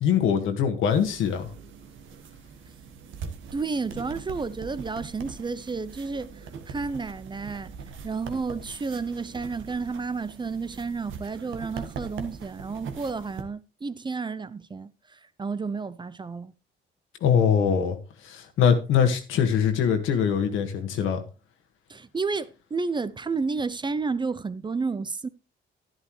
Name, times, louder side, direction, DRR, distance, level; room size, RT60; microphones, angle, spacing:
voice 1, 0.0-1.5 17.2-18.0 18.2-21.2, left 7 dB, 85° left, 1.7 m, -22 dB
sound 1, 0.9-13.4, right 5 dB, 75° right, 1.4 m, -41 dB
voice 2, 3.5-6.3 6.7-7.7 8.0-16.5 21.9-25.3, right 4 dB, 25° right, 0.5 m, -31 dB
11.0 x 11.0 x 3.1 m
cardioid pair, 90°, 20 cm